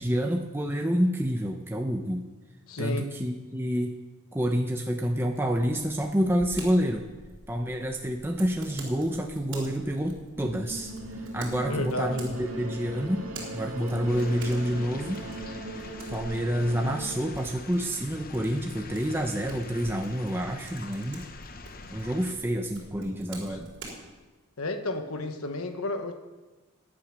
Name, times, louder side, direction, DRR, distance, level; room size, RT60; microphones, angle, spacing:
voice 1, 0.0-2.3 2.8-4.0 4.3-7.0 7.5-13.3 13.5-15.2 15.7-21.3 21.9-23.7, equal, 10° right, 3 dB, 0.7 m, -28 dB
voice 2, 2.7-3.1 11.6-12.4 23.5-23.6 24.6-26.1, left 2 dB, 80° left, 7 dB, 1.1 m, -32 dB
sound 1, 5.3-24.0, right 2 dB, 55° right, 4.0 m, -47 dB
sound 2, 10.4-17.2, right 1 dB, 80° right, 2.3 m, -39 dB
sound 3, 14.1-22.4, left 3 dB, 40° left, 0.8 m, -45 dB
15.5 x 8.8 x 6.3 m, 1.2 s
head